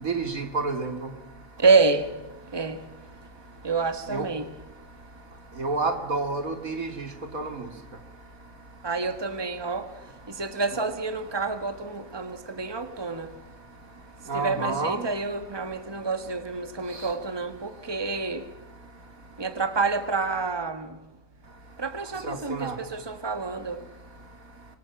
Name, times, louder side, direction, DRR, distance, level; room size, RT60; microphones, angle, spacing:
voice 1, 0.0-1.1 4.1-4.3 5.6-7.7 14.3-15.1 22.2-22.8, right 3 dB, 80° right, 3.0 m, -29 dB
voice 2, 1.6-2.2 2.5-2.9 3.6-4.5 8.8-13.4 14.3-18.5 19.4-21.0 21.8-23.9, right 4 dB, 20° right, 1.7 m, -28 dB
26.0 x 24.0 x 7.3 m
omnidirectional pair, 1.4 m